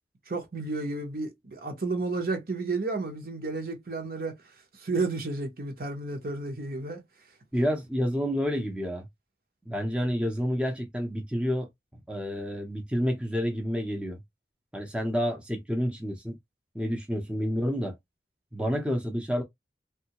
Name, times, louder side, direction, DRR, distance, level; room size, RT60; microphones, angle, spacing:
voice 1, 0.3-4.3 4.8-7.0, right 3 dB, 55° right, 0.8 m, -32 dB
voice 2, 7.5-9.1 9.7-11.7 11.9-14.2 14.7-16.4 16.7-17.9 18.5-19.4, equal, 5° right, 0.6 m, -29 dB
3.4 x 2.3 x 2.8 m
head